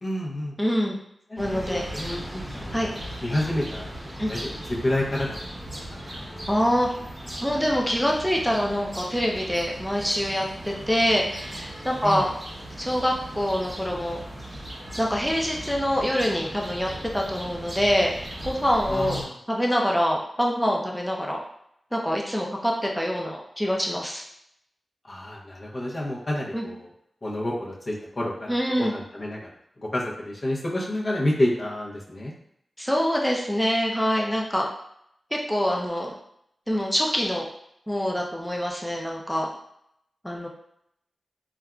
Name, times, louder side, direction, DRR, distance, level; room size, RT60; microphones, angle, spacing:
voice 1, 0.0-0.6 1.3-2.9 3.2-3.9 4.3-5.4 5.8-6.0 12.0-12.2 18.9-19.4 25.0-26.9 27.2-29.4 29.8-32.3, left 1 dB, 45° left, -4 dB, 0.8 m, -29 dB
voice 2, 0.6-1.0 1.4-1.8 2.7-2.9 4.2-4.3 6.0-6.2 6.5-6.9 7.4-12.3 12.8-14.2 15.0-19.2 19.5-21.4 21.9-24.2 26.5-26.7 28.5-28.9 32.8-34.7 35.3-36.1 36.7-37.5 37.9-39.5 40.2-40.5, equal, 5° left, -1 dB, 0.5 m, -25 dB
sound 1, 1.4-19.2, right 1 dB, 20° right, 0.9 m, -38 dB
3.4 x 2.4 x 2.2 m, 0.75 s
cardioid pair, 60°, 0 cm